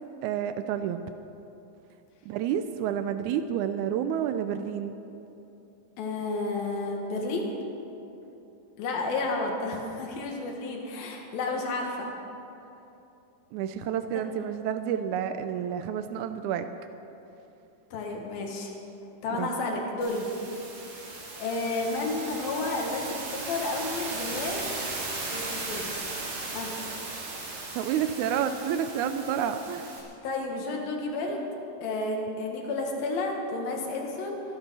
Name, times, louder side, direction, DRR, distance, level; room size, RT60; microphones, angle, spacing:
voice 1, 0.2-1.0 2.2-4.9 13.5-16.7 19.4-19.5 27.7-29.9, right 9 dB, 85° right, 9 dB, 1.7 m, -29 dB
voice 2, 6.0-7.5 8.8-12.1 14.1-14.2 17.9-18.8 19.2-20.3 21.4-24.6 25.3-25.9 26.5-26.7 30.2-31.4 31.8-34.4, left 2 dB, 90° left, 1 dB, 3.4 m, -31 dB
sound 1, 20.0-30.0, right 3 dB, 65° right, 4.0 m, -37 dB
24.5 x 9.0 x 5.5 m, 2.9 s
omnidirectional pair, 4.1 m